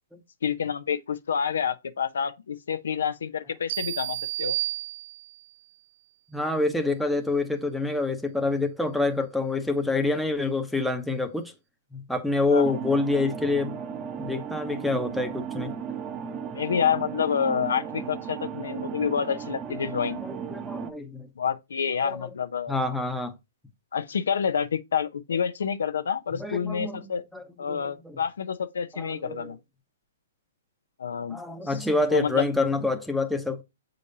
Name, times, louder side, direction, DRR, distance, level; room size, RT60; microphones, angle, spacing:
voice 1, 0.4-4.6 12.5-12.7 16.5-20.2 21.4-22.8 23.9-27.2 27.6-29.6 31.0-31.4 31.9-32.4, left 7 dB, 75° left, 0.6 m, -28 dB
sound 1, 3.7-5.5, right 19 dB, 40° right, 0.4 m, -31 dB
voice 2, 6.3-11.5 11.9-13.8 14.2-16.0 20.2-21.3 22.0-22.3 22.7-23.4 26.4-28.2 28.9-29.5 31.3-33.6, left 2 dB, ahead, 0.8 m, -27 dB
sound 2, 12.6-20.9, right 7 dB, 25° right, 0.8 m, -35 dB
7.2 x 5.1 x 2.8 m
hypercardioid pair, 135°, 0 cm